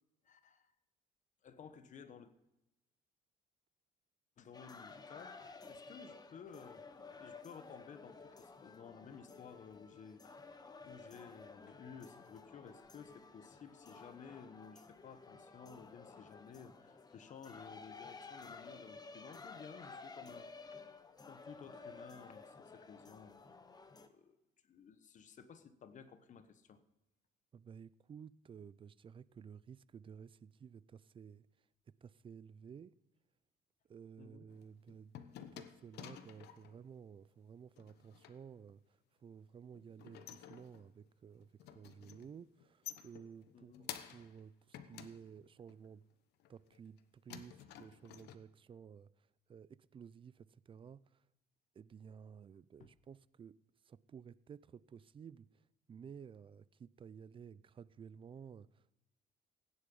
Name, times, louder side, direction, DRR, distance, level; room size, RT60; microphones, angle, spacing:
voice 1, 0.2-0.7 1.4-2.3 4.4-10.5 10.8-20.8 21.2-23.5 24.0-24.4 24.6-26.8 34.2-34.5 43.5-43.9 52.8-52.9, left 6 dB, 45° left, 1.2 m, -55 dB
sound 1, 4.5-24.1, left 4 dB, 25° left, 1.1 m, -54 dB
voice 2, 27.5-31.5 31.9-33.0 33.9-35.1 35.5-46.0 46.5-51.2 51.7-53.6 53.8-58.9, right 7 dB, 30° right, 0.5 m, -54 dB
sound 2, 34.5-36.8 37.8-38.4 39.7-41.1 41.4-42.3 42.6-44.4 44.7-45.9 46.4-47.0 47.3-48.4, left 10 dB, 80° left, 1.1 m, -52 dB
16.0 x 10.0 x 5.4 m
cardioid pair, 110°, 17 cm